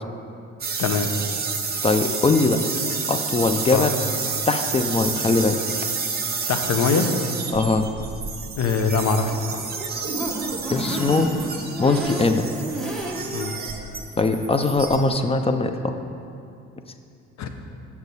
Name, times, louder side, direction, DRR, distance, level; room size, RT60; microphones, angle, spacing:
sound 1, 0.6-15.1, right 5 dB, 30° right, 0.8 m, -30 dB
voice 1, 1.8-2.6 3.1-3.9 4.5-5.6 7.5-7.8 10.7-11.3 11.8-12.5 14.2-15.9, left 3 dB, 20° left, 8 dB, 0.4 m, -21 dB
voice 2, 6.5-7.1 8.6-9.6 13.3-13.6 17.4-17.5, left 5 dB, 65° left, 6 dB, 0.7 m, -23 dB
sound 2, 9.6-13.5 13.9-14.0 14.3-14.4, right 1 dB, ahead, 0.9 m, -31 dB
7.1 x 6.4 x 4.1 m, 2.5 s
cardioid pair, 90°, 30 cm